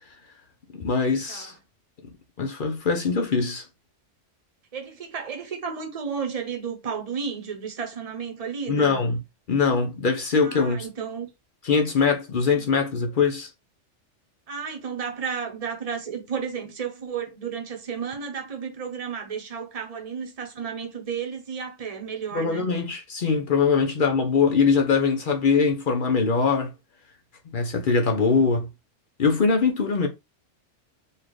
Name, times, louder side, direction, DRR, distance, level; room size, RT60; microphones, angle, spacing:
voice 1, 0.7-1.5 2.4-3.6 8.7-9.2 9.5-10.9 11.6-13.5 22.3-26.7 27.5-28.7 29.2-30.1, left 5 dB, 50° left, 0.7 m, -22 dB
voice 2, 4.7-9.0 10.4-11.3 12.5-12.7 14.5-22.7, right 6 dB, 35° right, 0.9 m, -33 dB
4.1 x 2.4 x 3.1 m
omnidirectional pair, 1.3 m